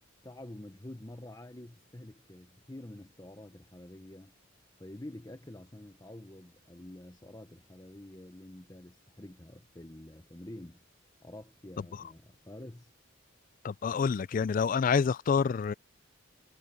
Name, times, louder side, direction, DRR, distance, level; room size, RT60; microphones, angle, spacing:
voice 1, 0.2-4.3 4.8-10.8 11.2-12.9, left 1 dB, 20° left, 0.9 m, -48 dB
voice 2, 13.6-15.7, left 6 dB, 40° left, 0.3 m, -27 dB
head